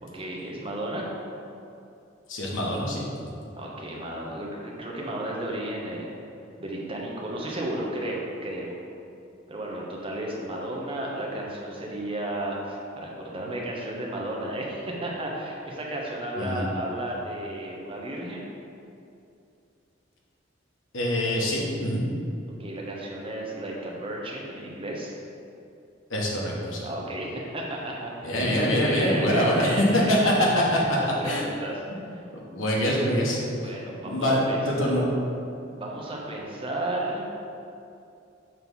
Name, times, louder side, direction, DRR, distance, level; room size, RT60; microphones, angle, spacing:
voice 1, 0.0-1.1 3.6-6.1 6.6-8.8 9.5-18.5 22.6-25.2 26.8-31.8 33.6-35.0 35.7-37.3, right 1 dB, 30° right, -2 dB, 0.9 m, -33 dB
voice 2, 2.3-3.1 16.4-16.6 20.9-22.0 26.1-26.8 28.2-30.8 31.2-31.4 32.5-33.4 34.1-34.4 34.7-35.0, equal, 90° left, -3 dB, 1.2 m, -24 dB
6.0 x 3.2 x 5.5 m, 2.6 s
head